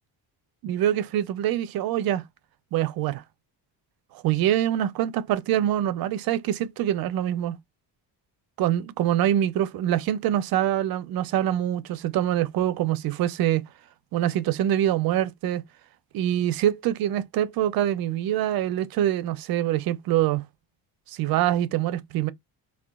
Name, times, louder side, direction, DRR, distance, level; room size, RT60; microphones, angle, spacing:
voice 1, 0.6-2.2 2.7-3.2 4.2-7.6 8.6-13.6 14.1-15.6 16.1-20.4 21.1-22.3, right 12 dB, 60° right, 0.5 m, -24 dB
3.8 x 2.2 x 2.3 m
cardioid pair, 160°, 42 cm